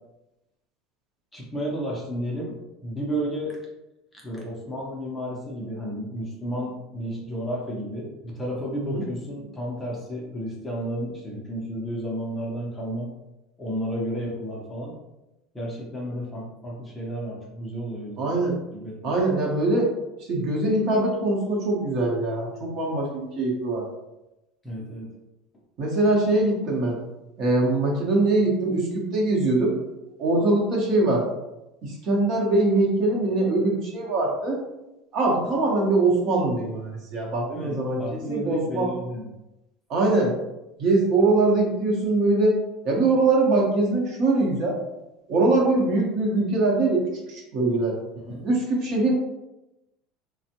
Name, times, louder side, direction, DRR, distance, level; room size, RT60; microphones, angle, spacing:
voice 1, 1.3-3.6 4.2-13.1 13.6-15.0 15.5-18.3 18.7-19.1 24.6-25.1 37.5-39.3 48.2-48.4, equal, 10° left, -4 dB, 0.5 m, -32 dB
voice 2, 18.2-18.6 19.0-19.9 20.3-23.8 25.8-27.0 27.4-29.8 30.2-31.2 31.8-34.6 35.1-38.9 39.9-40.3 40.8-42.5 42.8-44.8 45.3-47.0 47.3-47.9 48.4-49.1, right 2 dB, 40° right, -2 dB, 0.8 m, -22 dB
3.4 x 2.0 x 2.8 m, 0.96 s
cardioid pair, 160°, 0 cm